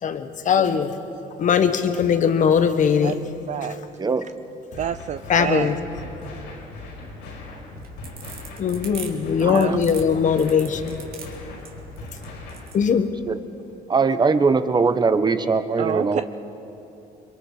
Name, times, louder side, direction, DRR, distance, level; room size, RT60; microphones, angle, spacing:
voice 1, 0.0-1.0 1.4-3.2 5.3-5.8 8.6-11.0 12.7-13.1, left 7 dB, 50° left, 1.5 m, -20 dB
voice 2, 3.5-3.8 4.8-5.7 9.4-9.8 15.8-16.2, right 10 dB, 45° right, 0.5 m, -27 dB
sound 1, 4.7-12.7, left 2 dB, 85° left, 5.2 m, -39 dB
sound 2, 7.7-12.8, right 6 dB, 65° right, 2.8 m, -40 dB
voice 3, 9.4-9.8 13.3-13.4 13.9-16.2, right 4 dB, 25° right, 1.0 m, -21 dB
29.5 x 23.5 x 5.0 m
cardioid pair, 110°, 17 cm